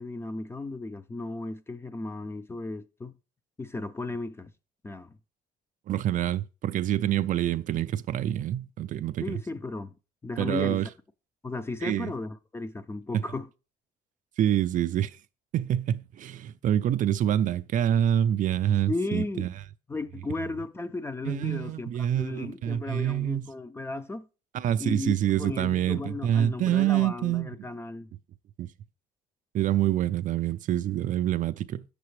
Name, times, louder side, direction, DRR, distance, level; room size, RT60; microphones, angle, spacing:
voice 1, 0.0-3.1 3.6-4.5 4.8-5.2 9.2-10.0 10.2-10.8 11.4-13.5 18.9-19.5 19.9-24.3 24.8-28.1, left 2 dB, 15° left, 0.5 m, -35 dB
voice 2, 5.9-9.4 10.4-10.9 11.8-12.1 13.1-13.2 14.4-15.2 15.5-19.5 21.3-23.4 24.5-27.5 28.6-28.7 29.5-31.8, right 11 dB, 50° right, 0.4 m, -26 dB
7.7 x 6.6 x 3.2 m
cardioid pair, 110°, 17 cm